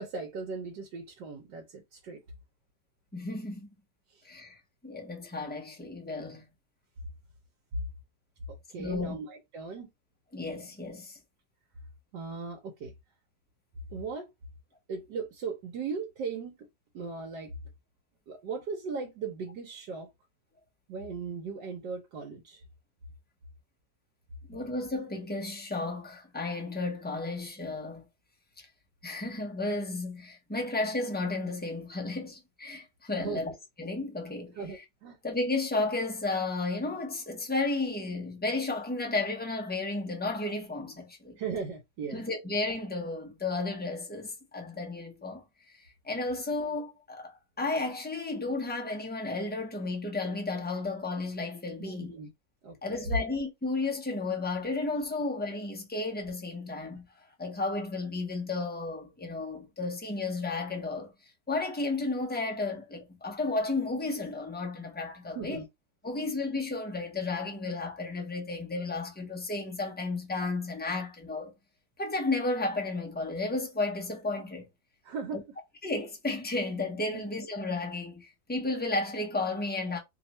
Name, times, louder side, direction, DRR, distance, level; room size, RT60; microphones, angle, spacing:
voice 1, 0.0-2.2 4.1-4.2 8.7-9.9 12.1-12.9 13.9-14.3 14.9-16.7 16.9-17.5 18.3-20.1 20.9-22.6 33.2-33.4 34.5-35.2 41.4-42.2 51.8-52.3 52.6-53.0 65.3-65.7 75.0-75.4 77.1-77.2, right 5 dB, 80° right, 1.4 m, -38 dB
voice 2, 3.1-3.7 4.2-6.4 8.8-9.1 10.3-11.2 24.5-28.1 28.6-28.7 29.0-33.5 33.8-34.5 35.2-41.4 42.1-45.4 45.7-52.1 52.8-57.1 57.4-61.1 61.5-65.6 66.0-71.5 72.0-74.7 75.3-75.4 75.8-80.0, left 3 dB, 10° left, 0.5 m, -33 dB
3.3 x 2.4 x 4.1 m
omnidirectional pair, 1.9 m